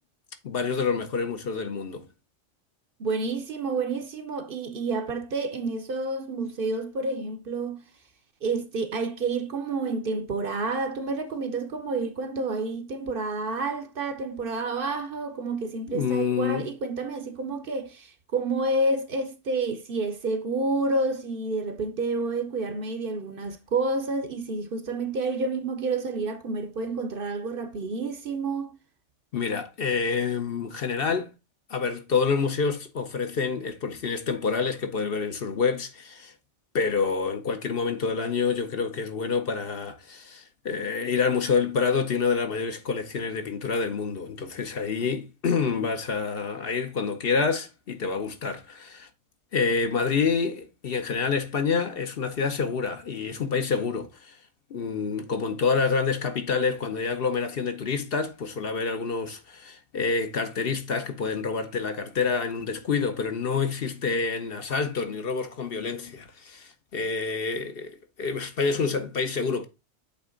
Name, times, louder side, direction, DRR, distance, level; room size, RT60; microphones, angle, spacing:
voice 1, 0.4-2.1 15.9-16.7 29.3-31.3 31.7-36.3 36.7-49.1 49.5-54.4 54.7-69.7, left 5 dB, 55° left, 0.9 m, -27 dB
voice 2, 3.0-7.8 8.4-28.8, right 3 dB, 55° right, 0.8 m, -29 dB
8.1 x 3.3 x 3.7 m
omnidirectional pair, 1.2 m